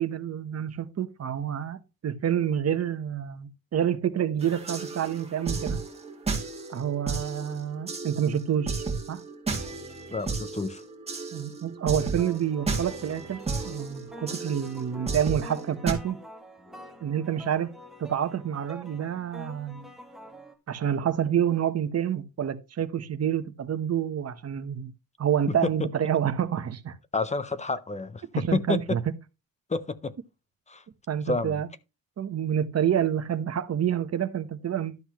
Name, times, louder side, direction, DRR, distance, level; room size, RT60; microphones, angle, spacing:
voice 1, 0.0-5.8 6.7-8.8 9.1-9.2 11.3-16.2 17.0-17.7 18.0-19.9 20.7-24.9 25.2-26.9 28.3-29.2 31.1-31.7 32.2-35.0, right 9 dB, 45° right, 1.1 m, -28 dB
sound 1, 4.4-15.9, right 4 dB, 15° right, 2.3 m, -34 dB
voice 2, 10.1-10.8 25.5-25.6 27.1-29.0 29.7-30.1 30.7-30.8 31.3-31.6, left 3 dB, 20° left, 0.6 m, -29 dB
sound 2, 12.1-20.5, equal, ahead, 1.9 m, -47 dB
12.0 x 7.9 x 3.0 m
wide cardioid pair, 170°, 35 cm